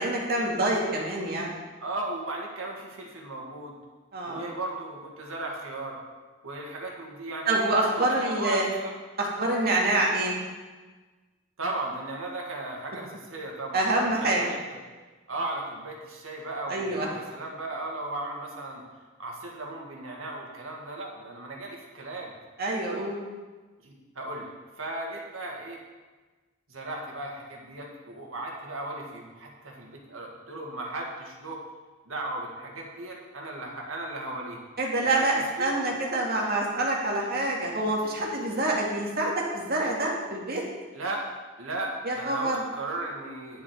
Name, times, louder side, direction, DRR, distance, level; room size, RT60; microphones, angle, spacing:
voice 1, 0.0-1.5 4.1-4.4 7.5-8.6 9.2-10.3 13.7-14.4 16.7-17.1 22.6-23.2 34.8-35.3 35.6-40.6 42.0-42.6, right 2 dB, 50° right, -2 dB, 2.0 m, -26 dB
voice 2, 1.8-3.8 4.3-6.0 6.4-9.0 11.6-14.8 15.3-18.8 19.2-22.3 23.8-25.8 26.7-31.6 32.1-34.6 35.0-35.9 40.9-41.2 41.6-43.6, right 2 dB, 80° right, -1 dB, 2.0 m, -36 dB
10.0 x 7.4 x 5.0 m, 1.3 s
head